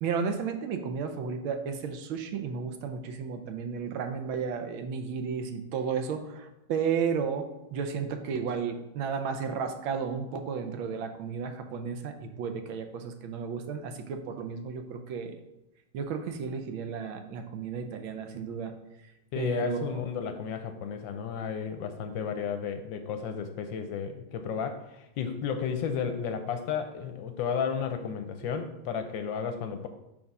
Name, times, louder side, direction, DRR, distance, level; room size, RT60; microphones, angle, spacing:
voice 1, 0.0-15.3 15.9-18.7 19.4-20.0, right 6 dB, 75° right, 7 dB, 1.5 m, -33 dB
voice 2, 19.3-29.9, left 6 dB, 75° left, 7 dB, 1.2 m, -33 dB
6.0 x 3.7 x 5.3 m, 0.90 s
omnidirectional pair, 2.3 m